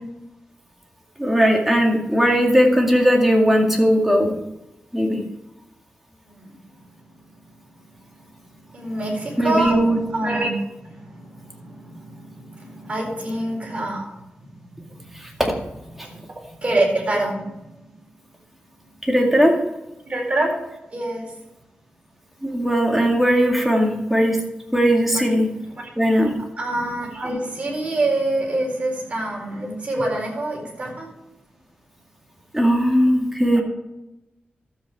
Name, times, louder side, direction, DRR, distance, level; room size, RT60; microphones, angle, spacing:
voice 1, 1.2-4.3 4.9-5.2 9.4-10.0 15.2-15.5 16.0-16.1 19.0-19.6 22.4-24.4 24.7-25.5 26.0-26.3 32.5-33.6, equal, 5° right, 0 dB, 2.1 m, -18 dB
voice 2, 6.2-6.6 8.3-8.4 8.7-14.1 14.4-15.2 16.0-17.7 20.1-20.6 20.9-21.3 25.1-25.3 25.7-25.9 26.6-31.1 33.5-33.6, right 1 dB, 35° right, -2 dB, 4.2 m, -26 dB
12.5 x 8.0 x 4.7 m, 0.95 s
wide cardioid pair, 135°, 3 cm